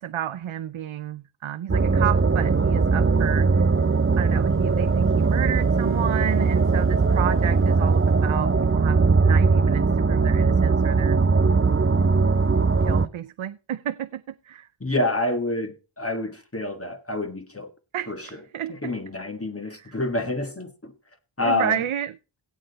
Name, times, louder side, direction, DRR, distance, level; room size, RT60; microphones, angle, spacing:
voice 1, 0.0-3.7 4.2-11.2 12.8-14.7 17.9-18.9 19.6-20.0 21.4-22.2, right 10 dB, 85° right, 0.6 m, -31 dB
sound 1, 1.7-13.1, right 4 dB, 25° right, 0.7 m, -20 dB
voice 2, 14.8-17.7 18.1-18.2 18.8-20.9 21.4-21.8, left 2 dB, 30° left, 1.6 m, -27 dB
16.5 x 6.5 x 4.0 m
wide cardioid pair, 45°, 48 cm